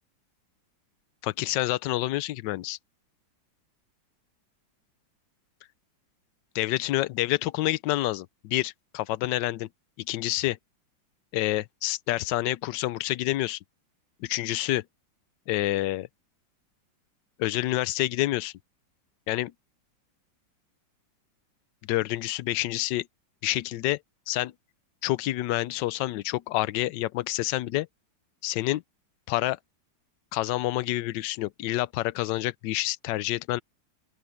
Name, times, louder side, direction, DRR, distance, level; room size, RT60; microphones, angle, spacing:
voice 1, 1.2-2.8 6.5-9.7 10.0-10.6 11.3-13.6 14.2-14.8 15.5-16.1 17.4-18.5 19.3-19.5 21.9-23.1 23.4-24.0 24.3-24.5 25.0-27.9 28.4-28.8 29.3-29.6 30.3-33.6, left 16 dB, 75° left, 1.2 m, -28 dB
open air
omnidirectional pair, 2.1 m